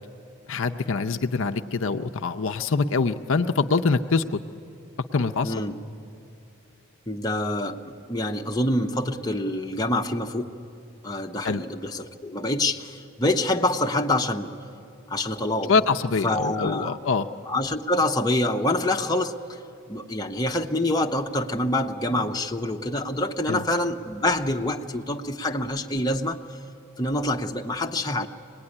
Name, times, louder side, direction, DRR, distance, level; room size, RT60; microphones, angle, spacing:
voice 1, 0.5-4.4 5.1-5.5 11.4-11.6 15.7-17.3 23.5-23.6, left 4 dB, 60° left, 6 dB, 0.6 m, -24 dB
voice 2, 5.4-5.7 7.1-7.8 8.1-10.5 11.0-14.5 15.1-15.7 16.2-17.0 17.5-19.6 19.9-26.4 27.0-28.3, left 1 dB, 15° left, 1 dB, 0.8 m, -26 dB
24.5 x 19.5 x 9.8 m, 2.6 s
head